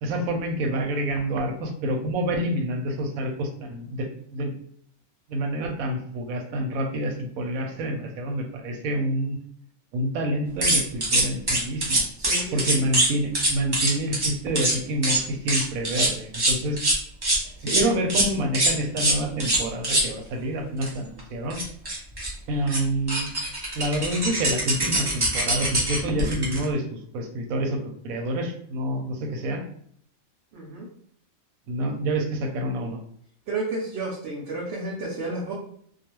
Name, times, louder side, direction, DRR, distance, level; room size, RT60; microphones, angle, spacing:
voice 1, 0.0-4.5 5.3-9.4 9.9-12.0 12.5-16.8 17.7-21.6 22.5-23.3 23.7-29.6 31.7-33.0, right 1 dB, 90° right, 4 dB, 1.0 m, -28 dB
sound 1, 10.6-13.1 13.3-14.3 14.5-14.7 15.0-15.2 15.5-17.4 17.7-17.8 18.1-18.3 18.5-20.1 20.8-20.9 21.2-21.3 21.5-22.3 22.7-22.8 23.1-26.6, right 1 dB, 40° right, 0.3 m, -23 dB
voice 2, 12.2-12.9 17.6-17.8 30.5-30.9 33.5-35.5, right 2 dB, 65° right, -2 dB, 0.7 m, -32 dB
2.4 x 2.3 x 2.9 m, 0.65 s
omnidirectional pair, 1.4 m